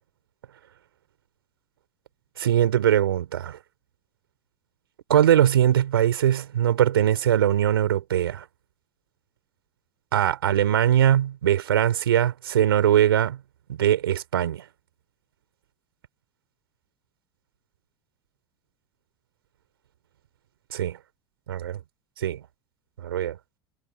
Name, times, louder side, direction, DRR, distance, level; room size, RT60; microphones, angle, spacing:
voice 1, 2.4-3.6 5.1-8.4 10.1-13.4 13.7-14.6 20.7-21.0 21.5-21.8 22.2-22.4 23.0-23.4, right 11 dB, 85° right, 3.8 m, -21 dB
hypercardioid pair, 80°, 12 cm